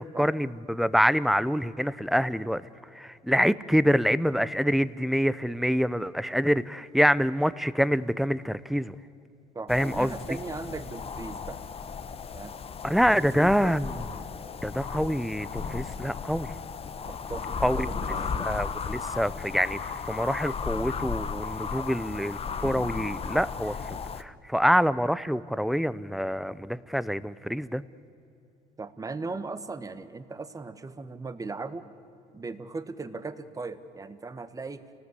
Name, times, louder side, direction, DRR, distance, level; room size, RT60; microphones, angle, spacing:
voice 1, 0.0-2.6 2.9-9.0 9.7-10.1 12.8-13.9 14.6-16.5 17.6-17.9 18.4-27.8, equal, ahead, 16 dB, 0.7 m, -26 dB
voice 2, 9.5-11.6 12.3-12.5 13.1-13.8 17.1-18.4 28.8-31.9 32.3-34.8, right 3 dB, 20° right, 11 dB, 1.4 m, -38 dB
sound 1, 9.7-24.2, left 5 dB, 35° left, 1.0 m, -35 dB
29.5 x 19.0 x 8.3 m, 2.8 s
cardioid pair, 110°, 17 cm